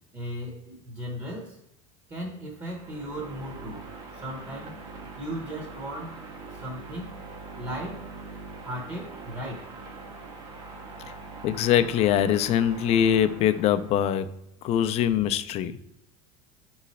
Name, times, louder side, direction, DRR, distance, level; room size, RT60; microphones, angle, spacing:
voice 1, 0.1-1.6 2.1-3.9 4.1-4.8 5.2-6.2 6.5-7.2 7.6-8.1 8.6-9.7, equal, 25° right, 0 dB, 0.8 m, -36 dB
sound 1, 2.6-14.1, right 3 dB, 80° right, 1.1 m, -43 dB
voice 2, 11.4-14.3 14.6-15.8, left 10 dB, 45° left, 12 dB, 0.4 m, -23 dB
3.7 x 3.1 x 4.1 m, 0.84 s
supercardioid pair, 120°, 16 cm